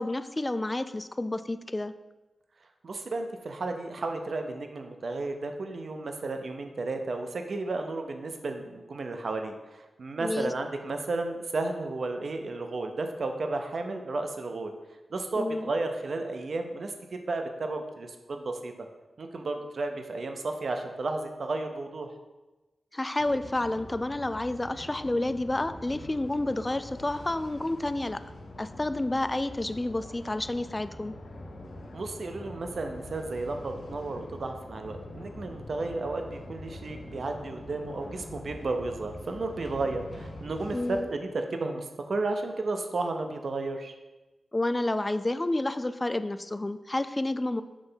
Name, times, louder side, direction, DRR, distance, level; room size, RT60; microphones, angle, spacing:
voice 1, 0.0-1.9 10.2-10.5 15.4-15.7 22.9-28.2 28.6-31.1 40.7-41.1 44.5-47.6, left 2 dB, 25° left, 12 dB, 0.3 m, -30 dB
voice 2, 2.8-14.7 15.1-18.7 19.2-22.1 31.9-43.9, right 3 dB, 65° right, 5 dB, 0.6 m, -33 dB
sound 1, 23.2-41.0, left 1 dB, 80° left, 0.9 m, -44 dB
6.1 x 3.3 x 5.6 m, 1.1 s
cardioid pair, 70°, 0 cm